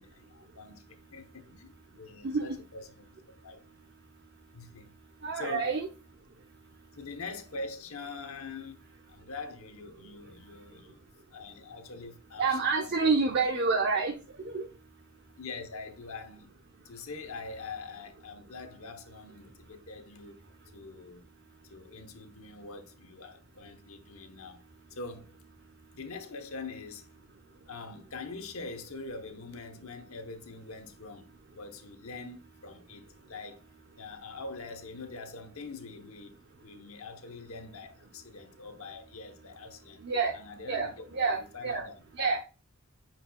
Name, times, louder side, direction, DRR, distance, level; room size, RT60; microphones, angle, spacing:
voice 1, 0.0-3.2 3.4-3.6 4.5-4.9 5.3-5.7 6.9-8.8 9.1-11.0 11.3-13.5 13.9-14.0 15.4-16.5 16.8-20.4 20.7-21.2 21.6-24.6 24.9-25.4 25.9-27.1 27.7-31.3 31.5-33.7 34.0-40.0 40.3-41.0 41.3-42.3, left 3 dB, 70° left, 1.0 m, -44 dB
voice 2, 5.2-5.9 12.4-14.1 14.4-14.7 40.0-40.3 40.7-41.8 42.1-42.4, right 4 dB, 50° right, 0.8 m, -28 dB
9.4 x 4.5 x 2.3 m
head